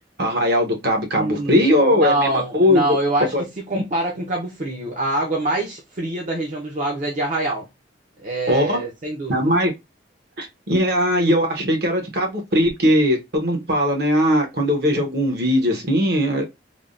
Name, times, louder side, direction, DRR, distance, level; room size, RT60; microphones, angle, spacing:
voice 1, 0.2-3.0 3.3-3.4 3.7-3.8 8.5-8.8 9.3-9.7 10.4-16.5, equal, 60° right, 1.0 m, -19 dB
voice 2, 1.1-7.7 8.2-9.5, right 2 dB, 45° right, 0.6 m, -25 dB
3.4 x 2.2 x 2.4 m
head